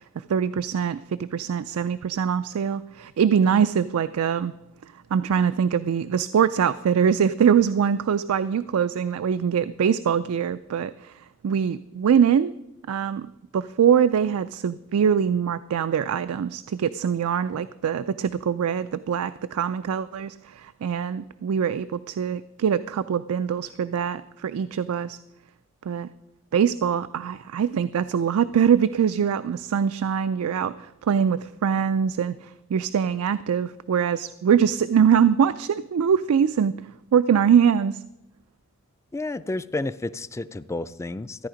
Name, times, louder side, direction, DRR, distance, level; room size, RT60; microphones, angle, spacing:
voice 1, 0.3-4.5 5.1-11.1 11.4-12.5 12.9-25.2 25.9-26.1 26.5-30.7 31.0-36.7 37.1-38.0, right 7 dB, 90° right, 13 dB, 0.4 m, -23 dB
voice 2, 39.1-41.5, left 2 dB, 15° left, 15 dB, 0.3 m, -31 dB
13.5 x 9.5 x 5.1 m, 0.90 s
head